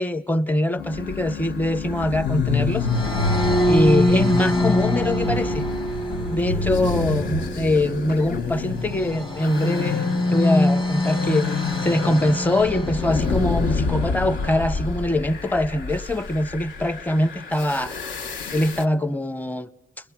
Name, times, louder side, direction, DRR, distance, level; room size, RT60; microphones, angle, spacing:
voice 1, 0.0-2.9 3.7-5.6 6.3-18.0 18.5-19.7, left 1 dB, 10° left, 0.8 m, -23 dB
sound 1, 0.8-10.0, left 12 dB, 50° left, 0.9 m, -37 dB
sound 2, 0.9-18.8, left 4 dB, 70° left, 1.1 m, -28 dB
sound 3, 2.8-14.1, left 1 dB, 25° left, 1.3 m, -25 dB
29.5 x 22.0 x 7.3 m
cardioid pair, 90°, 20 cm